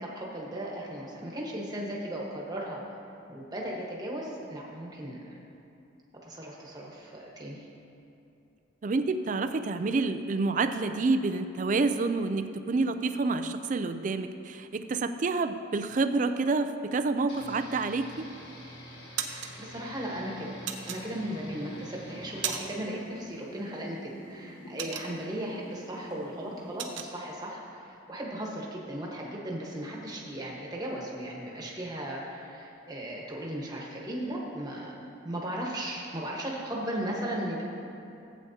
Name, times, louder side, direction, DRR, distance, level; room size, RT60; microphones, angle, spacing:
voice 1, 0.0-2.8 3.3-5.4 6.2-7.6 19.2-20.6 20.9-35.0 35.2-37.6, right 1 dB, 20° right, -3 dB, 1.3 m, -36 dB
voice 2, 8.8-18.3, right 3 dB, 40° right, 9 dB, 0.4 m, -28 dB
sound 1, 17.3-22.6, left 1 dB, 60° left, 1.6 m, -47 dB
sound 2, 18.1-18.6 18.9-19.5 20.7-21.5 22.0-22.9 23.2-23.4 23.8-25.5 25.9-26.1 26.3-27.1, right 8 dB, 70° right, 0.7 m, -35 dB
sound 3, 21.6-26.6, equal, 75° left, 2.1 m, -47 dB
14.5 x 8.4 x 2.8 m, 2.7 s
head